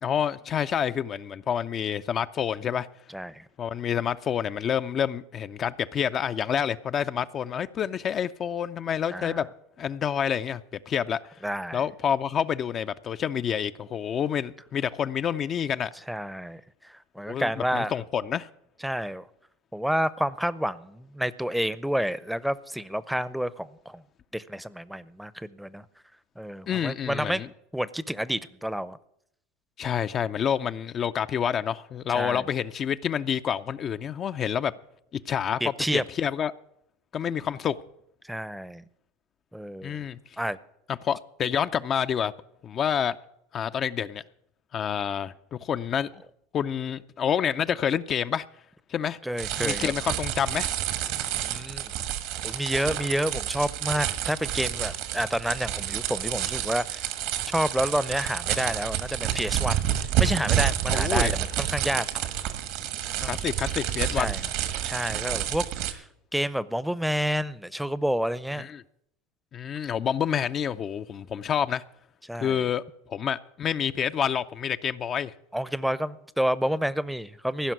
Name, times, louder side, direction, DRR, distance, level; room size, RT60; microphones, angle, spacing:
voice 1, 0.0-2.9 3.6-9.5 9.8-10.6 10.9-11.4 11.7-15.9 17.3-18.5 26.7-27.5 29.8-34.7 35.3-36.5 37.1-37.8 39.8-40.2 41.0-42.3 42.6-43.2 43.5-44.2 44.7-45.3 45.6-46.1 46.5-48.4 48.9-49.2 49.6-50.7 60.9-61.3 63.2-64.3 68.6-68.8 69.5-71.8 72.4-72.8 73.1-75.3, left 8 dB, 40° left, 0.4 m, -28 dB
voice 2, 3.1-3.4 9.1-9.4 11.4-11.8 16.1-17.9 18.8-19.3 19.7-24.0 24.3-25.8 26.4-27.4 27.7-29.0 32.1-32.4 35.6-36.0 38.2-38.8 39.5-40.0 40.4-40.6 49.2-49.9 51.4-51.8 52.4-57.1 57.5-59.9 60.2-62.1 63.2-63.4 64.1-64.4 64.8-66.0 66.3-68.7 72.2-72.6 75.5-77.7, equal, ahead, 0.6 m, -29 dB
sound 1, 49.4-65.9, right 11 dB, 65° right, 1.4 m, -29 dB
15.5 x 5.7 x 9.4 m
hypercardioid pair, 85°, 0 cm